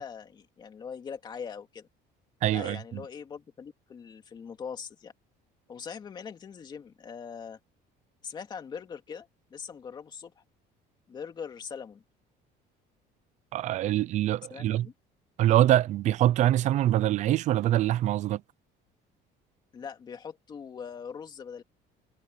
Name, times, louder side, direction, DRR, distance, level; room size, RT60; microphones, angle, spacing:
voice 1, 0.0-1.9 2.5-5.1 5.7-7.6 8.2-10.4 11.1-12.0 14.5-14.9 19.7-21.6, left 6 dB, 25° left, 2.4 m, -41 dB
voice 2, 2.4-3.0 13.5-14.9 15.4-18.4, right 13 dB, 40° right, 0.6 m, -24 dB
cardioid pair, 175°, 18 cm